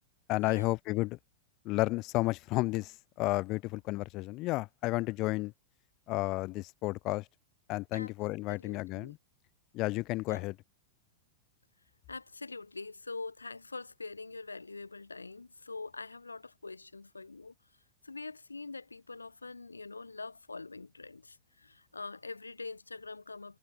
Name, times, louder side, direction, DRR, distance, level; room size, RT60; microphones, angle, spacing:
voice 1, 0.3-1.2 1.6-5.5 6.1-7.2 7.7-9.2 9.7-10.5, left 20 dB, 40° left, 0.4 m, -32 dB
voice 2, 8.5-9.1 10.3-10.5 12.1-17.5 18.0-23.6, left 3 dB, 80° left, 1.3 m, -44 dB
figure-of-eight pair, 90°, 0 cm